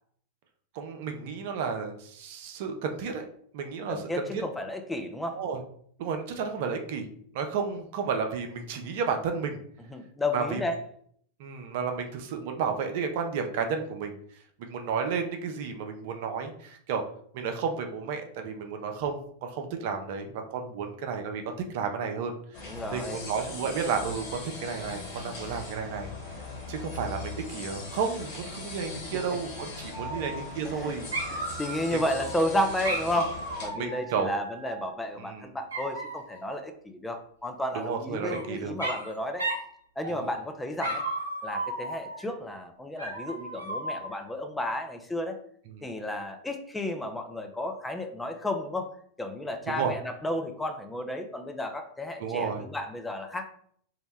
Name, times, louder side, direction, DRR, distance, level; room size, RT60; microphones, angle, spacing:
voice 1, 0.7-3.3 3.5-4.4 5.3-5.6 6.0-7.1 7.3-9.6 10.3-10.6 11.4-14.2 14.6-17.0 17.3-22.6 22.9-26.1 26.7-31.1 31.9-32.0 33.7-34.3 35.2-35.5 37.7-38.7 40.1-40.2 45.7-45.9 49.7-49.9 52.2-52.7, right 6 dB, 55° right, 5 dB, 0.4 m, -32 dB
voice 2, 3.9-5.4 9.9-10.8 22.6-23.2 29.1-29.2 30.1-30.3 30.6-31.0 31.3-39.5 40.0-41.0 41.4-45.4 45.8-48.9 49.2-53.4, left 1 dB, 5° left, 5 dB, 0.4 m, -32 dB
sound 1, 22.5-33.7, left 3 dB, 50° left, 1.1 m, -40 dB
Dog, 29.9-30.8 31.1-32.3 32.8-34.9 35.7-36.4 37.8-38.4 38.8-39.1 39.4-39.7 40.0-40.4 40.8-42.3 43.0-44.2, right 1 dB, 80° right, 0.8 m, -35 dB
2.7 x 2.1 x 3.2 m, 0.62 s
figure-of-eight pair, 95°, 0 cm